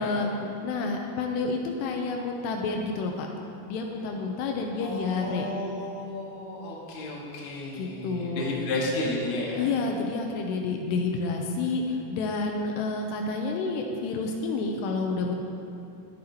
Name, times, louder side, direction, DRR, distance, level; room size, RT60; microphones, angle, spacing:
voice 1, 0.0-3.3 3.7-5.5 7.7-8.4 9.6-15.4, left 3 dB, 85° left, 2 dB, 2.6 m, -29 dB
voice 2, 4.8-9.7, left 1 dB, 60° left, -4 dB, 2.0 m, -32 dB
13.0 x 7.6 x 2.8 m, 2.8 s
omnidirectional pair, 4.9 m